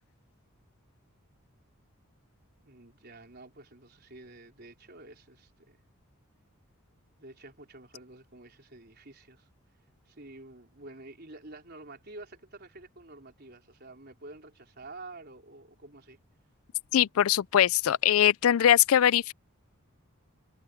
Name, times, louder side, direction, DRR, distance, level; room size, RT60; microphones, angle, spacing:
voice 1, 2.6-5.8 7.2-9.5 10.1-16.2, right 2 dB, 45° right, 4.4 m, -49 dB
voice 2, 16.9-19.3, left 10 dB, 70° left, 0.4 m, -22 dB
head